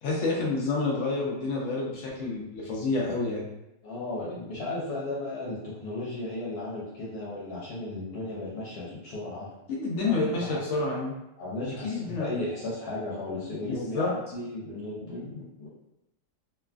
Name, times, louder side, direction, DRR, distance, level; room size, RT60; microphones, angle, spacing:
voice 1, 0.0-3.4 9.7-11.1 11.8-12.3 13.7-14.1, left 3 dB, 90° left, -3 dB, 0.6 m, -29 dB
voice 2, 3.8-9.5 10.0-10.1 10.4-10.7 11.4-15.7, left 2 dB, 65° left, -7 dB, 1.2 m, -35 dB
3.0 x 2.2 x 2.4 m, 0.87 s
omnidirectional pair, 1.9 m